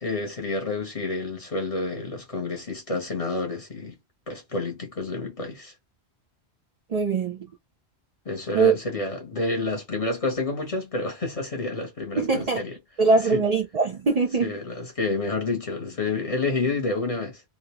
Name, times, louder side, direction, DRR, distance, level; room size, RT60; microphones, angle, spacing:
voice 1, 0.0-3.9 4.3-5.7 8.2-12.7 13.3-13.4 14.4-17.4, left 3 dB, 35° left, 0.8 m, -29 dB
voice 2, 6.9-7.5 8.5-8.7 12.2-12.6 13.0-14.6, right 4 dB, 45° right, 0.6 m, -22 dB
2.5 x 2.1 x 2.9 m
omnidirectional pair, 1.1 m